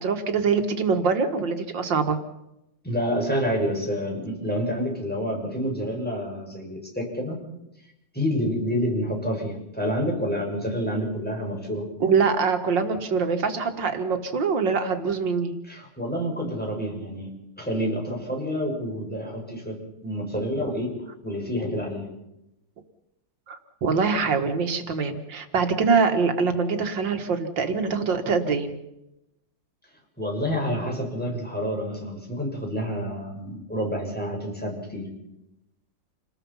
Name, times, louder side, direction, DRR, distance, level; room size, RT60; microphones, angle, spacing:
voice 1, 0.0-2.2 12.0-15.5 23.5-28.8, right 5 dB, 80° right, 7 dB, 2.5 m, -24 dB
voice 2, 2.8-7.4 8.1-11.9 15.6-17.3 17.6-20.9 21.2-22.1 30.2-35.1, equal, 5° left, -1 dB, 6.6 m, -28 dB
28.5 x 20.0 x 5.7 m, 0.88 s
omnidirectional pair, 2.0 m